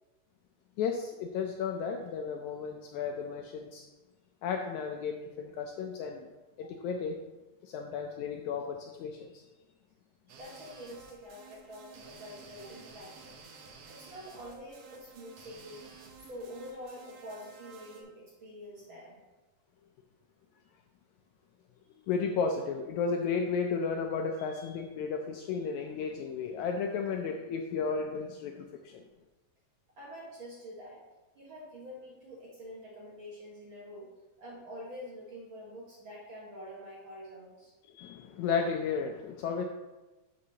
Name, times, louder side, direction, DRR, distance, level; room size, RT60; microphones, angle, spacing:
voice 1, 0.8-3.9 4.4-6.3 6.6-7.2 7.6-9.4 22.1-29.0 37.9-39.6, left 5 dB, 80° left, 3 dB, 1.7 m, -33 dB
voice 2, 10.3-13.4 13.9-15.9 16.2-19.2 30.0-31.0 31.3-34.1 34.4-37.7, equal, 50° right, -4 dB, 1.7 m, -46 dB
sound 1, 10.3-18.0, right 4 dB, 65° right, 1.6 m, -52 dB
11.5 x 6.4 x 2.8 m, 1.1 s
omnidirectional pair, 3.8 m